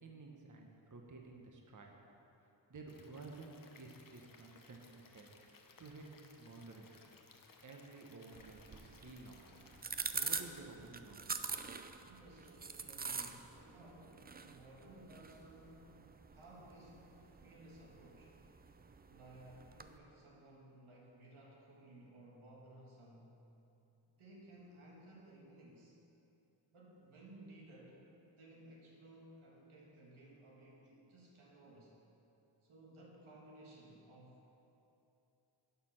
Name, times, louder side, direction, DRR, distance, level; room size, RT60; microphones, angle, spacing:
voice 1, 0.0-1.9 2.7-5.3 5.8-6.1 6.4-7.0 7.6-9.4 10.0-11.5, right 3 dB, 40° right, 1 dB, 1.0 m, -53 dB
Stream / Liquid, 2.9-9.8, left 4 dB, 45° left, 0.8 m, -63 dB
sound 1, 8.3-20.0, right 5 dB, 20° right, 0.3 m, -46 dB
voice 2, 12.0-18.4 19.0-23.4 24.2-25.9 26.7-28.0 28.4-31.9 32.6-34.5, right 1 dB, 90° right, -3 dB, 1.6 m, -58 dB
11.0 x 4.3 x 5.6 m, 2.9 s
cardioid pair, 50°, 49 cm